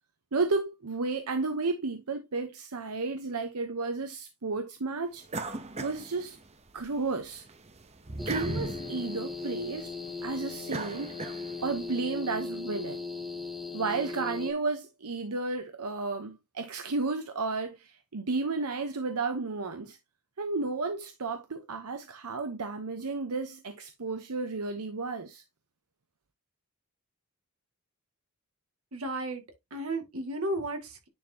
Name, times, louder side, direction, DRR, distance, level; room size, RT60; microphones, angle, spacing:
voice 1, 0.3-5.3 5.8-6.4 6.7-7.5 8.3-9.9 10.2-11.1 11.6-13.0 13.7-20.0 20.4-25.4, right 3 dB, 85° right, 0.9 m, -32 dB
sound 1, 5.3-6.8 7.2-11.8, right 2 dB, 30° right, 0.8 m, -38 dB
sound 2, 8.2-14.5, left 4 dB, ahead, 0.8 m, -38 dB
voice 2, 28.9-29.4 29.7-31.1, right 1 dB, 65° right, 2.0 m, -33 dB
9.9 x 4.4 x 2.8 m
head